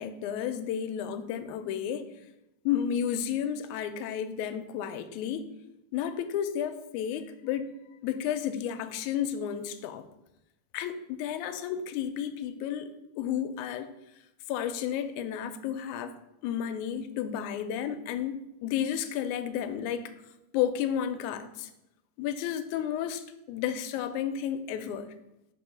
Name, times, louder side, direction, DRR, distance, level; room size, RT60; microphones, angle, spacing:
voice 1, 0.0-2.1 2.7-5.5 5.9-7.7 8.0-10.1 10.7-12.9 13.2-13.9 14.5-16.2 16.4-20.1 20.5-21.7 22.2-25.1, left 9 dB, 80° left, 1.9 m, -32 dB
5.3 x 4.4 x 4.9 m
omnidirectional pair, 3.5 m